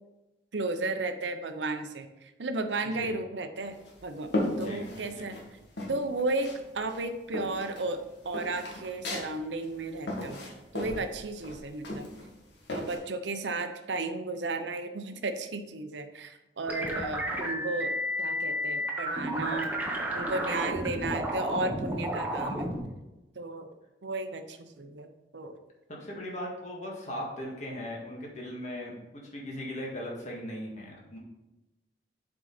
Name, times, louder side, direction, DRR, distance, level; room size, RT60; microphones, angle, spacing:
voice 1, 0.5-3.8 4.0-4.3 4.6-5.4 5.9-6.5 6.7-8.0 8.2-10.4 10.7-12.1 12.7-17.9 18.2-22.7 23.4-23.7 24.0-25.6, right 2 dB, 85° right, 8 dB, 0.7 m, -34 dB
sound 1, 3.6-5.4 5.8-6.6 6.9-13.0, left 1 dB, 80° left, 1.7 m, -36 dB
voice 2, 4.6-5.4 25.9-29.0 29.3-31.2, equal, 40° left, -2 dB, 1.8 m, -38 dB
sound 2, 16.7-22.8, equal, 10° right, 1.0 m, -32 dB
7.6 x 4.8 x 4.1 m, 1.0 s
head